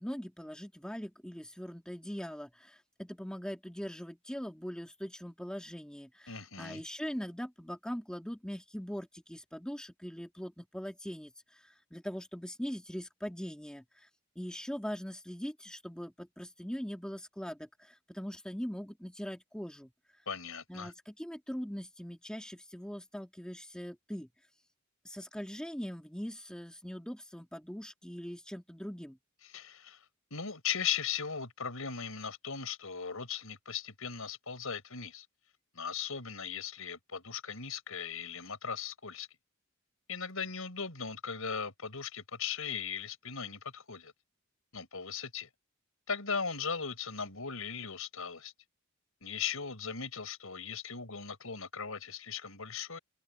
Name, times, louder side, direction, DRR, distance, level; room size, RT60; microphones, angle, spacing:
voice 1, 0.0-14.1 14.4-19.9 20.7-24.3 25.0-29.2, equal, 5° left, 2.1 m, -41 dB
voice 2, 6.3-6.8 20.3-20.9 29.5-30.0 30.3-35.2 35.7-39.3 40.1-44.1 44.7-45.5 46.1-48.5 49.2-53.0, left 6 dB, 80° left, 4.8 m, -38 dB
head